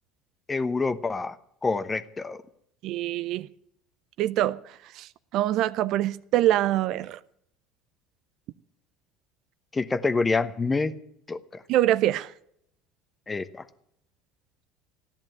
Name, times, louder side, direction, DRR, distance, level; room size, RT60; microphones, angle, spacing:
voice 1, 0.5-1.4 1.6-2.4 9.7-10.9 11.3-11.6 13.3-13.6, left 3 dB, 20° left, 1.1 m, -27 dB
voice 2, 2.8-3.5 4.2-4.6 5.0-7.2 11.7-12.3, right 13 dB, 60° right, 0.5 m, -24 dB
14.5 x 10.5 x 9.1 m
hypercardioid pair, 75°, 0 cm